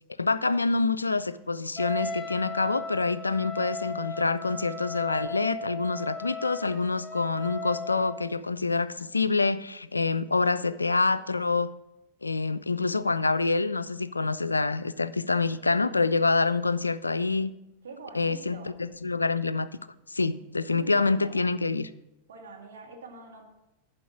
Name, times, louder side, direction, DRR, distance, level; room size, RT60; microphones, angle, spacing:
voice 1, 0.2-11.7 12.2-17.5 18.1-19.7 20.1-21.9, left 3 dB, 80° left, 15 dB, 0.3 m, -26 dB
Wind instrument woodwind instrument, 1.8-8.4, left 2 dB, 15° left, 0.5 m, -37 dB
voice 2, 17.8-18.8 20.7-21.5 22.3-23.4, right 4 dB, 65° right, 0 dB, 1.9 m, -45 dB
10.5 x 5.1 x 5.9 m, 0.91 s
figure-of-eight pair, 90°, 0 cm